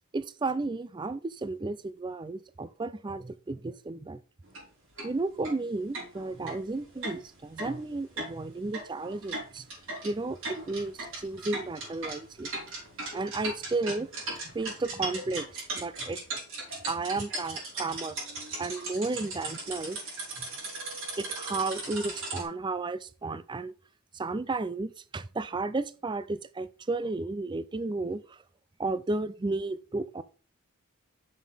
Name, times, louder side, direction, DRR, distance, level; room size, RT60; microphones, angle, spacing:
voice 1, 0.1-4.2 5.0-9.7 10.0-12.5 13.1-14.1 14.5-15.5 15.8-16.2 16.9-18.2 18.6-20.0 21.2-23.7 24.1-28.2 28.8-30.2, right 3 dB, 20° right, 0.4 m, -33 dB
sound 1, 4.5-4.6 5.0-5.1 5.4-5.5 5.9-22.4, right 2 dB, 60° right, 4.5 m, -38 dB
7.5 x 6.5 x 3.4 m
head